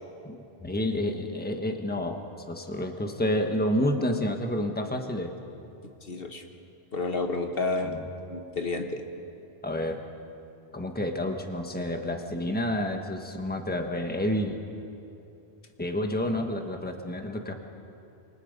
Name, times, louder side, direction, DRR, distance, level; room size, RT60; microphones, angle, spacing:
voice 1, 0.2-2.2 2.5-5.4 7.8-8.1 9.6-10.0 10.7-14.6 15.8-17.5, left 1 dB, 10° left, 4 dB, 1.4 m, -29 dB
voice 2, 6.1-6.4 6.9-8.0 8.3-9.0, left 3 dB, 60° left, 5 dB, 1.6 m, -30 dB
28.0 x 23.5 x 5.3 m, 2.7 s
omnidirectional pair, 1.1 m